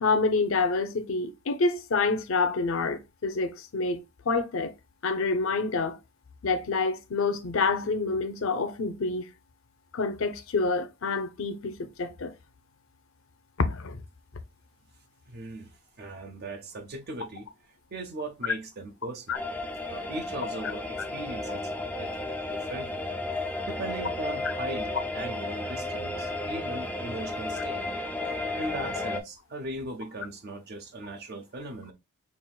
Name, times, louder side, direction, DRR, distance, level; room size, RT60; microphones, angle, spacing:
voice 1, 0.0-4.0 4.3-4.7 5.0-6.0 6.4-9.2 9.9-12.3 13.6-14.0 19.3-19.4, left 3 dB, 65° left, 0.6 m, -27 dB
voice 2, 15.3-15.7 16.0-19.4 19.9-21.7 22.0-22.2 22.5-23.0 23.7-27.8 28.3-31.9, right 2 dB, 45° right, 0.5 m, -39 dB
sound 1, 19.3-29.2, left 2 dB, 5° left, 0.3 m, -33 dB
5.5 x 2.5 x 2.2 m
head